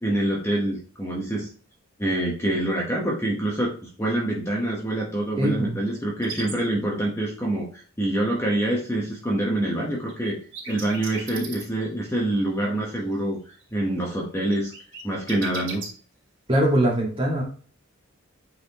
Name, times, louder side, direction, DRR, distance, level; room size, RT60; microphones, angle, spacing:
voice 1, 0.0-1.5 2.0-10.4 10.7-14.7 15.0-15.8, right 1 dB, 10° left, -2 dB, 1.0 m, -26 dB
voice 2, 5.4-5.8 16.5-17.4, right 1 dB, 25° right, -2 dB, 1.8 m, -22 dB
sound 1, 6.2-6.5 10.1-12.1 12.4-13.3 13.5-14.0 14.5-15.9, right 5 dB, 55° right, 2.6 m, -37 dB
8.4 x 4.1 x 2.9 m, 0.41 s
head